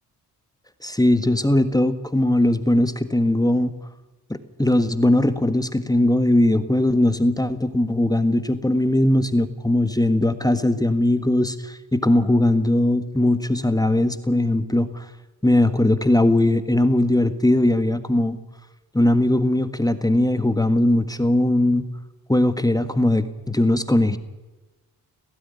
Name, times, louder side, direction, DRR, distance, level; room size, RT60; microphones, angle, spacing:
voice 1, 0.8-3.7 4.3-15.0 15.4-18.4 18.9-21.9 22.3-24.2, left 1 dB, 10° left, 10 dB, 1.6 m, -19 dB
17.0 x 16.0 x 9.8 m, 1.2 s
supercardioid pair, 45°, 40 cm